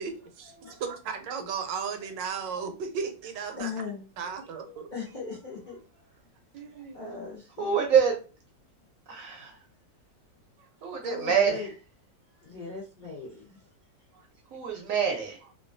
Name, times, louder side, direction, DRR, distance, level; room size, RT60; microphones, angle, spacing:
voice 1, 0.0-3.7 4.2-4.9 6.5-7.2, right 6 dB, 80° right, 1.2 m, -35 dB
voice 2, 3.6-5.8 6.7-7.9 11.0-11.7 12.4-13.7, left 5 dB, 70° left, 0.4 m, -39 dB
voice 3, 7.6-8.1 9.1-9.5 10.8-11.6 14.5-15.4, right 7 dB, 65° right, 0.8 m, -25 dB
2.9 x 2.3 x 2.6 m
omnidirectional pair, 1.9 m